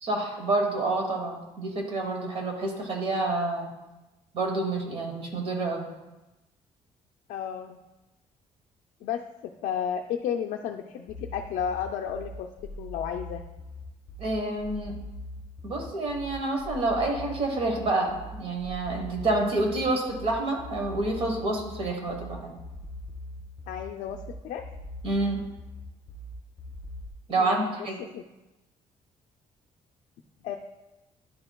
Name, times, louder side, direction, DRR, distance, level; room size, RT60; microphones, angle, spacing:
voice 1, 0.0-3.7 4.3-5.9 14.2-15.0 15.6-22.5 25.0-25.4 27.3-28.0, right 2 dB, 45° right, 1 dB, 1.2 m, -28 dB
voice 2, 7.3-7.8 9.0-9.2 9.6-12.5 12.8-13.4 23.7-24.6 27.4-27.9 28.1-28.2 30.4-30.6, left 8 dB, 75° left, 3 dB, 0.4 m, -32 dB
sound 1, 11.1-27.1, left 1 dB, 30° left, 0.9 m, -41 dB
10.5 x 4.4 x 2.2 m, 1.0 s
cardioid pair, 175°, 13 cm